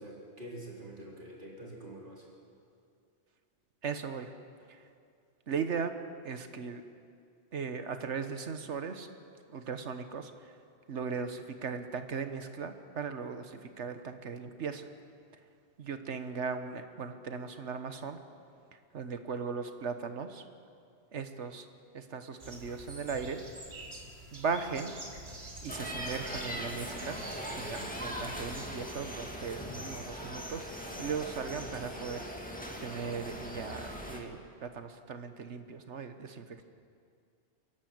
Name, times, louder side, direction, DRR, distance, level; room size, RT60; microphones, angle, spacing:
voice 1, 0.0-2.3, right 1 dB, 45° right, -4 dB, 4.3 m, -46 dB
voice 2, 3.8-4.3 4.7-4.9 5.5-5.9 6.2-6.8 7.5-9.1 9.5-10.6 10.9-14.9 15.8-18.2 18.7-20.4 21.1-21.7 21.9-23.4 24.3-24.9 25.6-27.2 27.5-32.2 32.8-36.6, right 5 dB, 85° right, 8 dB, 1.5 m, -38 dB
sound 1, 22.4-28.7, right 1 dB, 65° right, 2.8 m, -47 dB
sound 2, 25.7-34.2, equal, 5° left, 2.1 m, -40 dB
29.0 x 11.5 x 7.9 m, 2.3 s
omnidirectional pair, 1.2 m